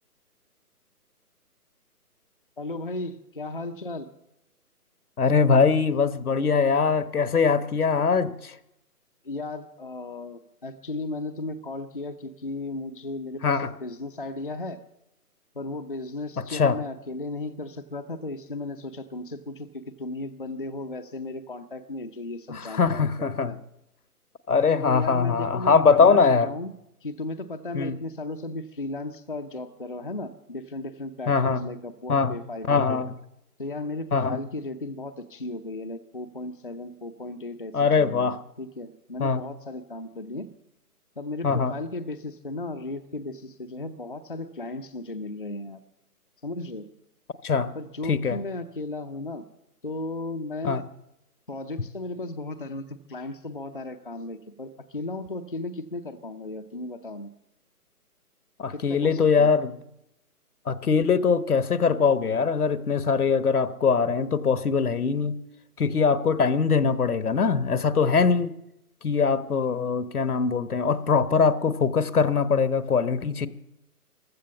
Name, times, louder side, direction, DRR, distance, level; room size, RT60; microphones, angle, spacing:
voice 1, 2.6-4.1 9.2-14.8 15.5-23.1 23.4-23.6 24.8-26.7 27.0-33.0 33.6-38.3 38.6-40.5 41.2-45.8 46.4-46.9 47.7-49.4 49.8-50.8 51.5-57.3 58.7-59.5, left 2 dB, 35° left, 6 dB, 0.6 m, -35 dB
voice 2, 5.2-8.6 13.4-13.7 16.5-16.8 22.5-23.5 24.5-26.5 27.7-28.0 31.3-31.6 32.1-32.4 32.7-33.1 34.1-34.4 37.7-38.4 39.2-39.4 41.4-41.8 47.4-47.7 48.1-48.4 50.6-50.8 58.6-59.7 60.7-65.4 65.8-68.5 69.0-73.5, left 5 dB, 70° left, 14 dB, 1.2 m, -22 dB
15.5 x 12.5 x 7.1 m, 0.84 s
hypercardioid pair, 175°, 46 cm